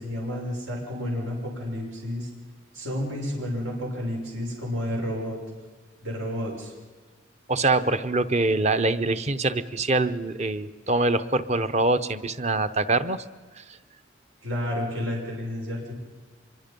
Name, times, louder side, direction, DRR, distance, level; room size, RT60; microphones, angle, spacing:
voice 1, 0.0-2.3 2.7-5.4 6.0-6.7 14.4-15.9, left 1 dB, 90° right, -1 dB, 6.4 m, -31 dB
voice 2, 7.5-13.2 13.6-13.8, right 2 dB, 35° right, 11 dB, 0.9 m, -24 dB
25.5 x 22.5 x 5.4 m, 1.4 s
head